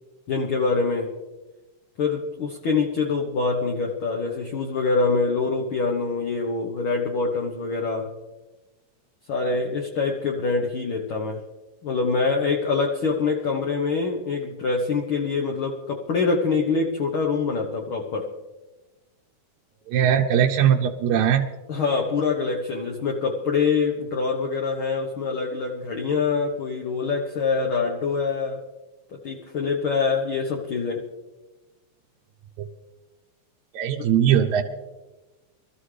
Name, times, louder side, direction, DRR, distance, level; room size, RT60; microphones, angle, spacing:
voice 1, 0.3-1.1 2.0-8.1 9.3-11.4 11.8-18.3 21.7-28.6 29.2-31.0 34.0-34.1, left 4 dB, 65° left, 1 dB, 1.3 m, -25 dB
voice 2, 19.9-21.5 33.7-34.6, right 9 dB, 70° right, 0 dB, 1.9 m, -20 dB
23.5 x 13.5 x 3.3 m, 1.1 s
omnidirectional pair, 3.9 m